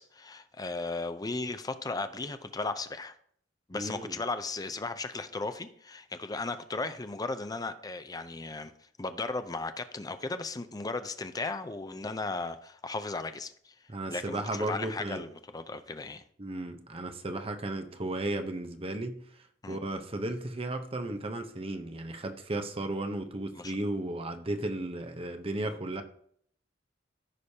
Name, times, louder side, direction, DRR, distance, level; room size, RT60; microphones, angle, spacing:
voice 1, 0.0-3.1 3.7-8.7 9.0-13.7 14.1-16.2 19.6-19.8 23.6-23.7, left 3 dB, 20° left, 10 dB, 0.5 m, -36 dB
voice 2, 3.7-4.2 13.9-15.2 16.4-26.0, right 2 dB, 30° right, 6 dB, 0.8 m, -35 dB
14.0 x 5.0 x 2.8 m, 0.63 s
head